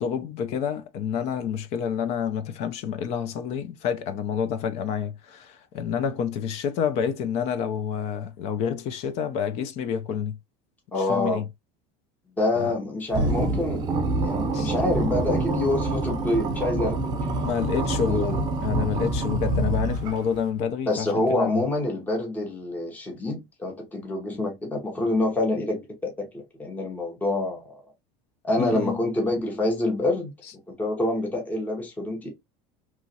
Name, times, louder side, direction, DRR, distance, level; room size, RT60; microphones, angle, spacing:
voice 1, 0.0-10.4 11.1-11.5 12.6-12.8 14.5-14.7 17.4-21.6 28.6-29.0, left 7 dB, 45° left, 0.4 m, -28 dB
voice 2, 10.9-11.4 12.4-17.3 17.7-17.8 18.1-18.4 20.9-27.7 28.4-30.3 30.7-32.3, left 2 dB, 10° left, 0.8 m, -27 dB
sound 1, 13.1-20.4, right 2 dB, 25° right, 0.6 m, -26 dB
2.9 x 2.4 x 2.7 m
cardioid pair, 160°, 15 cm